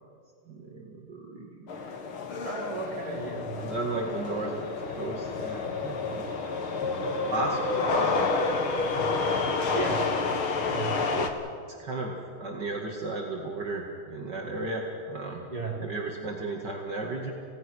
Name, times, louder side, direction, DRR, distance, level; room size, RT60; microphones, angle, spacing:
voice 1, 0.5-1.8 3.6-4.5 4.9-6.2 7.3-8.4 9.0-9.2 11.1-11.3 11.8-15.4 15.8-17.3, right 2 dB, 55° right, -1 dB, 2.6 m, -34 dB
sound 1, 1.7-11.3, left 4 dB, 90° left, 2.6 m, -29 dB
voice 2, 2.4-3.6 9.7-10.0 10.6-11.0 15.5-15.9, right 3 dB, 20° right, -2 dB, 4.0 m, -34 dB
30.0 x 17.5 x 6.3 m, 2.5 s
omnidirectional pair, 2.2 m